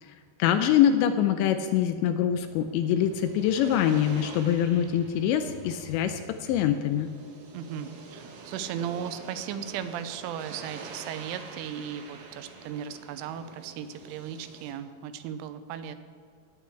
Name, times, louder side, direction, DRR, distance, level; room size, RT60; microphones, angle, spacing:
voice 1, 0.4-7.1, left 10 dB, 80° left, 8 dB, 2.7 m, -24 dB
sound 1, 2.5-14.7, right 4 dB, 65° right, 2.4 m, -47 dB
voice 2, 7.5-16.0, right 9 dB, 90° right, 10 dB, 3.2 m, -36 dB
18.5 x 8.3 x 4.6 m, 2.2 s
omnidirectional pair, 5.5 m